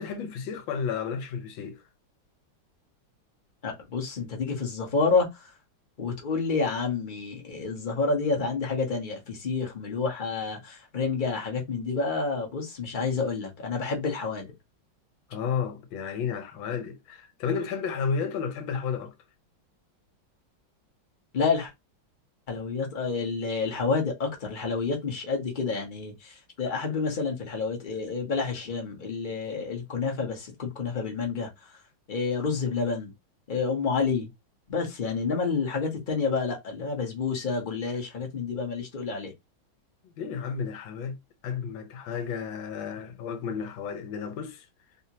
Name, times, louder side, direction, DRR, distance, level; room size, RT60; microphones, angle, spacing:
voice 1, 0.0-1.8 15.3-19.1 40.2-41.2 41.4-44.7, left 6 dB, 75° left, 1.5 m, -32 dB
voice 2, 3.6-5.5 6.0-14.5 21.3-21.7 22.5-31.8 32.1-33.1 33.5-34.3 34.7-39.3, left 4 dB, 35° left, 0.8 m, -29 dB
3.6 x 2.8 x 2.8 m
omnidirectional pair, 2.2 m